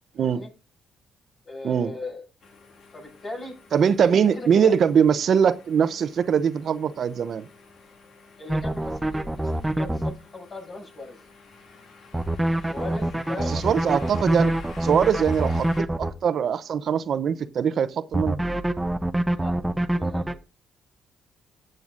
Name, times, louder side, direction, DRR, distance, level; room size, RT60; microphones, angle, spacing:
voice 1, 0.2-0.5 1.4-2.2 2.9-3.5 4.1-4.7 8.4-11.2 12.6-14.1 19.4-19.5 19.9-20.2, left 2 dB, 45° left, 6.8 m, -38 dB
sound 1, 2.4-15.8, left 4 dB, 65° left, 2.3 m, -49 dB
voice 2, 3.7-7.5 13.5-14.5 14.8-18.4, right 7 dB, 60° right, 0.6 m, -22 dB
sound 2, 8.5-10.1 12.1-16.1 18.1-20.3, right 1 dB, 10° right, 0.7 m, -25 dB
15.0 x 7.8 x 2.5 m
cardioid pair, 90°, 0 cm